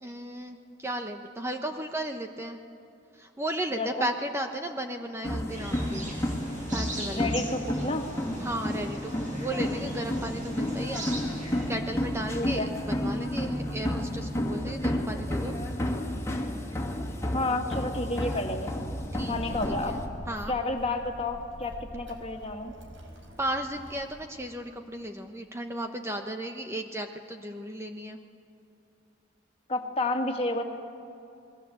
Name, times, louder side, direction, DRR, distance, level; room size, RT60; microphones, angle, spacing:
voice 1, 0.0-2.6 3.1-6.1 6.7-7.3 8.4-11.1 11.7-15.5 19.1-19.6 19.9-20.0 20.3-20.5 23.4-28.2, right 1 dB, 15° right, 5 dB, 1.0 m, -35 dB
voice 2, 3.8-4.1 7.1-8.1 12.3-12.7 17.3-18.7 19.3-20.0 20.5-22.7 29.7-30.6, left 2 dB, 30° left, 4 dB, 2.2 m, -30 dB
sound 1, 5.2-20.1, left 1 dB, 15° left, 2.5 m, -31 dB
sound 2, 5.5-11.7, right 1 dB, 40° right, 6.6 m, -40 dB
Child speech kid speaking, 19.0-24.2, equal, 85° right, 4.0 m, -45 dB
28.0 x 21.5 x 7.9 m, 2.7 s
head